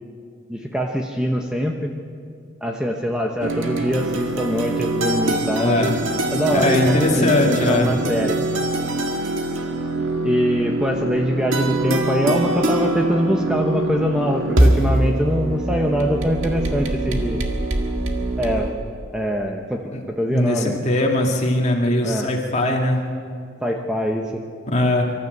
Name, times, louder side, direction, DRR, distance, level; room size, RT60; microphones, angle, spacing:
voice 1, 0.5-1.9 2.6-5.9 6.3-8.4 10.2-17.4 18.4-18.7 19.1-20.8 22.0-22.3 23.6-24.4, equal, 5° right, 1 dB, 0.9 m, -23 dB
sound 1, 3.4-18.7, right 2 dB, 75° right, 1.9 m, -23 dB
voice 2, 5.6-6.0 6.5-7.9 19.9-20.0 20.3-23.0 24.7-25.0, left 1 dB, 35° left, 1 dB, 2.2 m, -20 dB
24.5 x 13.5 x 8.0 m, 2.3 s
head